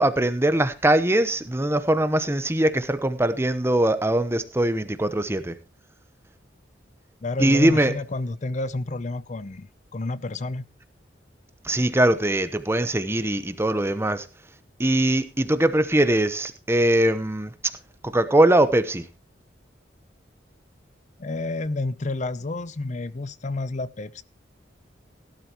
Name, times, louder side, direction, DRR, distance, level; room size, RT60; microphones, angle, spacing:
voice 1, 0.0-5.6 7.4-8.0 11.6-14.3 14.8-17.7 18.0-19.1, right 1 dB, 15° right, 0.9 m, -21 dB
voice 2, 7.2-10.6 21.2-24.2, left 2 dB, 40° left, 0.6 m, -30 dB
17.0 x 11.5 x 3.0 m
head